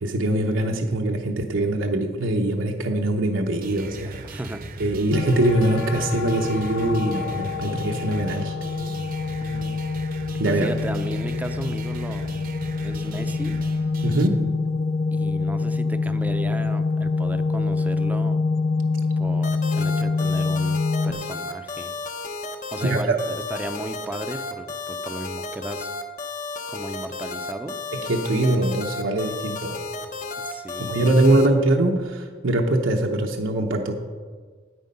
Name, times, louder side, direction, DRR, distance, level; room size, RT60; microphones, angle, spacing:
voice 1, 0.0-4.4 4.8-8.6 10.4-10.7 14.0-14.6 22.8-23.2 27.9-29.8 30.8-33.9, right 1 dB, 85° right, 2 dB, 0.9 m, -22 dB
sound 1, 3.6-14.3, right 2 dB, 50° right, 0.7 m, -39 dB
voice 2, 4.2-4.6 9.4-9.8 10.4-12.4 12.8-13.6 15.1-18.4 19.2-21.9 22.7-25.9 26.7-27.8 30.4-31.0, right 1 dB, 10° right, 9 dB, 0.5 m, -35 dB
sound 2, 5.1-21.1, left 4 dB, 80° left, 0.6 m, -26 dB
sound 3, 19.4-31.5, left 4 dB, 45° left, 0.8 m, -33 dB
9.5 x 8.5 x 5.4 m, 1.5 s
head